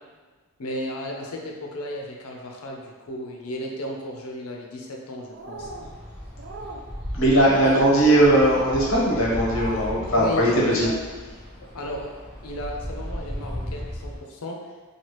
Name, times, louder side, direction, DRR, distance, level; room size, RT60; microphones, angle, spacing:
voice 1, 0.6-5.7 7.6-7.9 10.0-10.9 11.7-12.1 12.4-14.6, left 1 dB, 85° left, 0 dB, 0.5 m, -34 dB
sound 1, 5.3-5.9 6.4-6.8 7.4-7.9 8.5-8.9 9.4-9.9, right 2 dB, 50° right, 0.3 m, -37 dB
sound 2, 5.5-14.2, equal, 30° right, 1.0 m, -36 dB
voice 2, 7.2-10.9, right 1 dB, 60° left, -5 dB, 0.9 m, -19 dB
3.2 x 2.4 x 3.0 m, 1.4 s
head